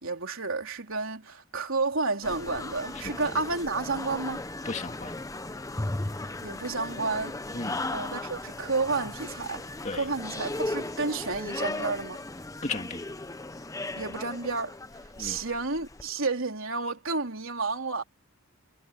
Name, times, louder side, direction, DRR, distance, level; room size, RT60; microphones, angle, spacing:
voice 1, 0.0-4.4 6.4-7.4 7.9-9.7 9.9-12.2 14.0-14.8 15.2-18.0, right 3 dB, 65° right, 3.6 m, -31 dB
sound 1, 2.2-16.1, left 2 dB, 15° left, 0.8 m, -36 dB
voice 2, 4.6-5.1 7.5-7.8 9.8-10.1 12.6-13.0 15.2-15.4, left 3 dB, 35° left, 2.2 m, -35 dB
head